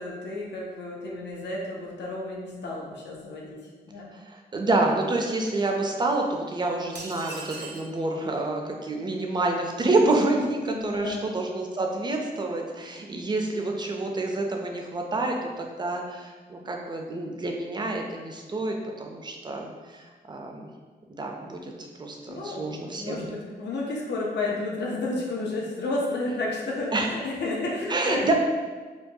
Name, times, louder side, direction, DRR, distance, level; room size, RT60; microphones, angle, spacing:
voice 1, 0.0-3.6 3.9-4.1 10.7-11.3 22.3-28.3, left 2 dB, 85° left, -2 dB, 0.6 m, -32 dB
voice 2, 4.1-20.7 21.1-21.7 22.0-23.2 26.9-27.1 27.9-28.3, right 2 dB, 25° right, 2 dB, 0.4 m, -28 dB
sound 1, 7.0-7.9, right 3 dB, 75° right, 0.6 m, -39 dB
4.5 x 2.2 x 2.7 m, 1.4 s
wide cardioid pair, 165°, 17 cm